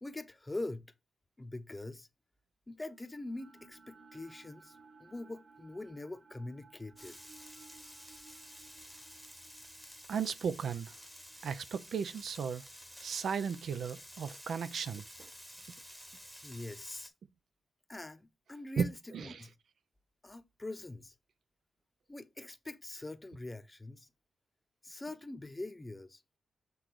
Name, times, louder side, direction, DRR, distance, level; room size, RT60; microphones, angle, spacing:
voice 1, 0.0-0.8 1.4-2.1 2.7-7.2 16.4-17.1 17.9-18.9 19.2-19.5 20.2-21.1 22.1-24.1 24.8-26.2, left 2 dB, 15° left, 0.8 m, -43 dB
sound 1, 2.9-13.0, right 4 dB, 40° right, 1.5 m, -61 dB
Frying (food), 7.0-17.1, equal, 5° right, 1.1 m, -52 dB
voice 2, 10.1-11.0 11.4-12.7 13.0-15.3 18.8-18.9 19.1-19.5, right 6 dB, 65° right, 0.5 m, -35 dB
8.0 x 3.7 x 4.7 m
wide cardioid pair, 140°, 0 cm